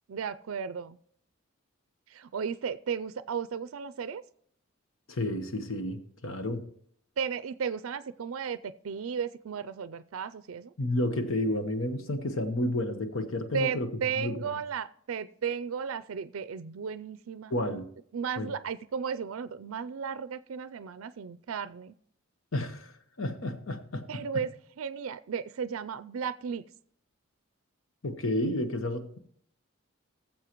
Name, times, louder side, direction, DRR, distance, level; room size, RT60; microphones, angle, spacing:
voice 1, 0.1-1.0 2.1-4.2 7.2-10.7 13.5-17.5 18.1-21.9 24.1-26.6, right 6 dB, 80° right, 14 dB, 0.4 m, -34 dB
voice 2, 5.1-6.6 10.8-13.9 14.2-14.4 17.5-17.9 18.4-18.5 22.5-22.9 23.2-24.2 28.0-29.2, left 1 dB, 75° left, 8 dB, 1.1 m, -31 dB
19.0 x 7.4 x 3.0 m, 0.62 s
head